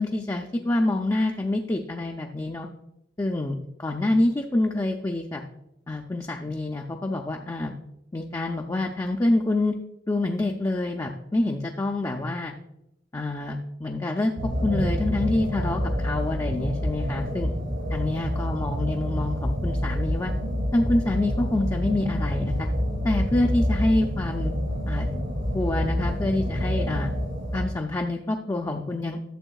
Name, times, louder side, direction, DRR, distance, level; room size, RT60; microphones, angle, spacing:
voice 1, 0.0-2.7 3.2-5.4 5.9-7.8 8.1-9.8 10.1-12.5 13.1-17.5 17.9-20.3 20.7-22.7 23.0-24.5 24.9-25.1 25.5-27.1 27.5-29.2, left 2 dB, 20° left, 1 dB, 0.4 m, -26 dB
sound 1, 14.4-27.7, equal, 70° right, 2.1 m, -27 dB
12.5 x 7.1 x 2.3 m, 0.84 s
head